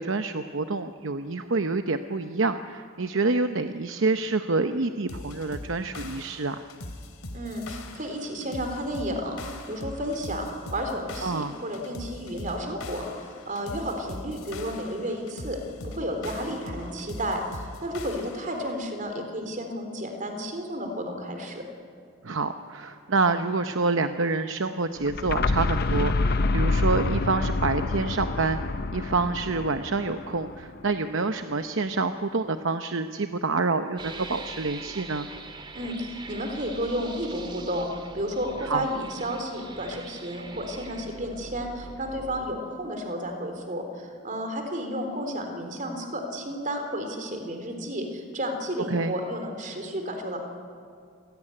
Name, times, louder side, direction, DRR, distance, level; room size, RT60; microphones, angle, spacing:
voice 1, 0.0-6.6 11.2-11.6 22.2-28.6 28.9-35.3 38.6-38.9 48.9-49.1, right 3 dB, 60° right, 8 dB, 0.8 m, -27 dB
sound 1, 5.1-18.7, left 2 dB, 80° left, 2.8 m, -41 dB
voice 2, 7.3-10.4 10.7-21.6 35.7-50.4, equal, 35° right, 5 dB, 3.8 m, -32 dB
sound 2, 25.0-30.8, left 3 dB, 45° left, 0.6 m, -27 dB
sound 3, 34.0-42.4, right 3 dB, 20° right, 1.9 m, -43 dB
28.0 x 17.5 x 10.0 m, 2.3 s
head